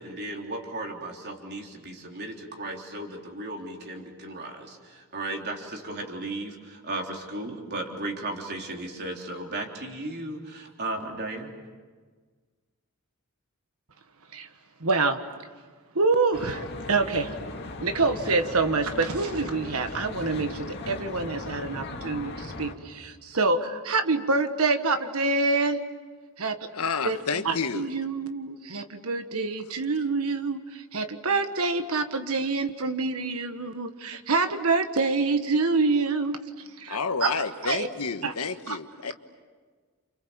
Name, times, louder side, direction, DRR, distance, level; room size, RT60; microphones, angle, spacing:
voice 1, 0.0-11.5, right 2 dB, 50° right, 1 dB, 3.6 m, -35 dB
voice 2, 14.8-15.2 15.9-17.3 17.8-25.8 26.4-26.6 27.0-27.2 27.4-36.4 36.8-37.3 37.6-37.9 38.2-38.3 38.7-38.8, right 3 dB, 70° right, 8 dB, 1.5 m, -26 dB
Traffic noise roadway noise, 16.3-22.7, left 2 dB, 50° left, 2.4 m, -38 dB
voice 3, 26.7-27.9 36.9-39.1, left 5 dB, 80° left, 8 dB, 1.4 m, -30 dB
29.5 x 27.5 x 7.2 m, 1.5 s
head